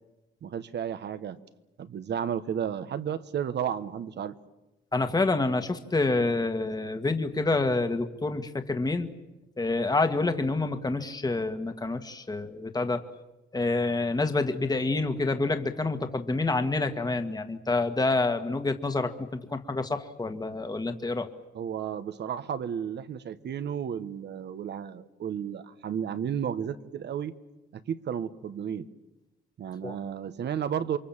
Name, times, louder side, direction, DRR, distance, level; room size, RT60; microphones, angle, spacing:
voice 1, 0.4-1.4 1.8-4.3 21.5-27.3 27.7-28.9 29.6-31.0, right 8 dB, 60° right, 12 dB, 1.3 m, -33 dB
voice 2, 4.9-9.1 9.6-13.0 13.5-19.1 19.5-21.3 29.8-30.0, left 3 dB, 20° left, 7 dB, 1.8 m, -27 dB
28.0 x 23.5 x 7.4 m, 1.0 s
cardioid pair, 90°, 20 cm